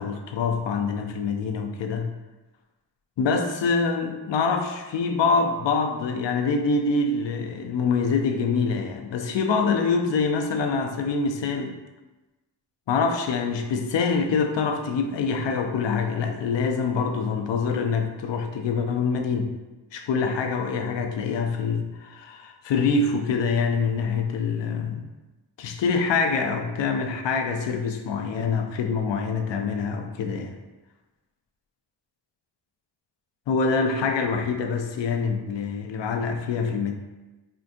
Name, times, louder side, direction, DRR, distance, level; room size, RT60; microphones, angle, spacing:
voice 1, 0.0-2.1 3.2-11.8 12.9-19.5 19.9-25.1 25.6-30.6 33.5-36.9, left 4 dB, 85° left, 5 dB, 0.5 m, -25 dB
4.4 x 2.5 x 2.5 m, 1.1 s
cardioid pair, 50°, 43 cm